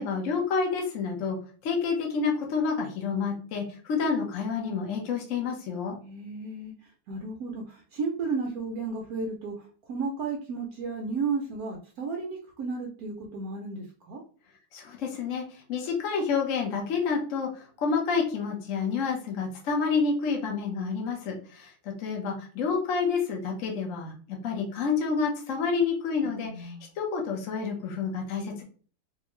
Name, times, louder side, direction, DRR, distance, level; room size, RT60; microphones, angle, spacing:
voice 1, 0.0-1.4 1.6-6.0 14.7-24.1 24.4-28.6, left 5 dB, 55° left, 0 dB, 0.9 m, -29 dB
voice 2, 6.0-14.2 26.2-26.9, right 4 dB, 75° right, 0 dB, 0.8 m, -34 dB
3.5 x 2.7 x 3.0 m, 0.41 s
omnidirectional pair, 2.3 m